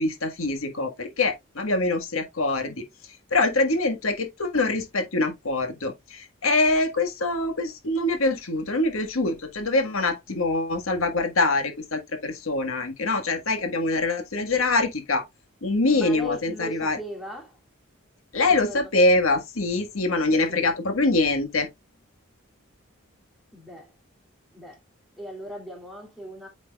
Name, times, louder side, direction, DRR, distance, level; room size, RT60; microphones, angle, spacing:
voice 1, 0.0-2.8 3.3-15.2 15.6-17.0 18.3-21.7, left 2 dB, 85° left, 1.6 m, -24 dB
voice 2, 15.9-17.6 18.7-18.9 20.3-20.7 23.5-23.9 24.5-24.8 25.2-26.5, left 1 dB, ahead, 2.5 m, -38 dB
8.6 x 6.0 x 2.3 m
head